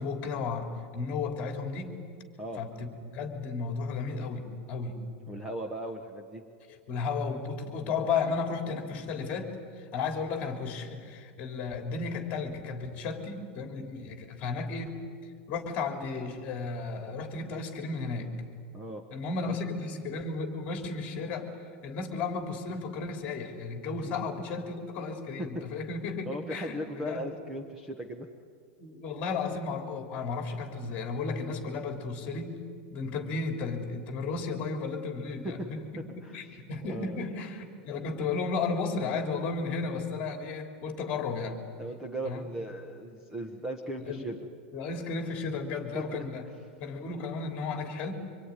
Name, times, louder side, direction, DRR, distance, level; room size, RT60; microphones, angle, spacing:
voice 1, 0.0-2.0 2.6-5.0 6.7-15.0 15.5-18.3 19.1-21.5 21.8-26.2 26.5-27.2 28.8-32.6 32.9-41.6 42.2-42.4 44.0-44.2 44.7-46.4 46.8-48.1, left 4 dB, 25° left, 4 dB, 3.3 m, -34 dB
voice 2, 5.3-6.4 18.7-19.0 19.4-19.6 24.0-24.1 25.4-25.6 26.2-28.3 35.4-35.7 36.2-36.4 36.8-37.2 41.8-44.4 45.9-46.3, right 1 dB, 10° right, 4 dB, 1.1 m, -37 dB
25.5 x 23.5 x 9.8 m, 2.1 s
supercardioid pair, 180°, 6 cm